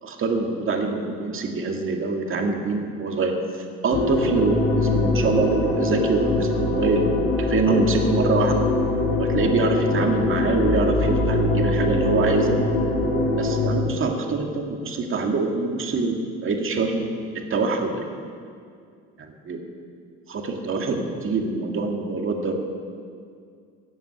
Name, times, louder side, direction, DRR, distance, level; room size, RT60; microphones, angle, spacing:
voice 1, 0.0-7.0 7.4-8.6 9.2-12.6 13.4-18.1 19.2-19.6 20.3-22.5, right 3 dB, 45° right, 2 dB, 2.2 m, -24 dB
sound 1, 3.9-13.7, left 2 dB, 85° left, 2.9 m, -23 dB
14.5 x 7.2 x 9.5 m, 2.2 s
supercardioid pair, 85°, 29 cm